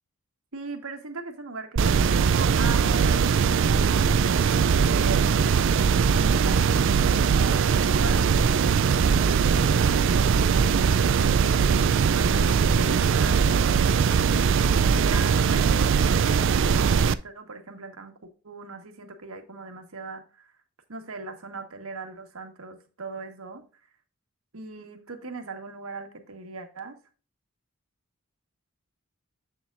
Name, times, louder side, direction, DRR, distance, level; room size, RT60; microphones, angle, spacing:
voice 1, 0.5-4.0 4.4-5.3 6.1-7.6 8.0-11.5 11.9-14.3 14.8-20.5 20.9-23.6 24.5-27.0, right 3 dB, 75° right, 1.5 m, -39 dB
sound 1, 1.8-17.1, right 6 dB, 55° right, 0.4 m, -21 dB
8.0 x 7.1 x 2.5 m
head